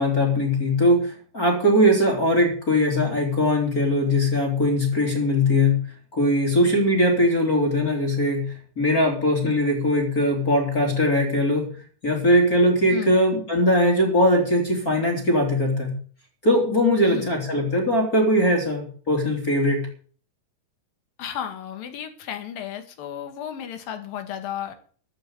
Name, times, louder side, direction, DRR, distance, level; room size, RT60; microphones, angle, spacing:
voice 1, 0.0-5.8 6.1-11.8 12.0-16.0 16.4-19.9, left 1 dB, 25° left, -1 dB, 3.1 m, -20 dB
voice 2, 17.0-17.3 21.2-24.7, left 10 dB, 65° left, 7 dB, 3.4 m, -33 dB
14.0 x 6.1 x 9.0 m, 0.44 s
omnidirectional pair, 4.5 m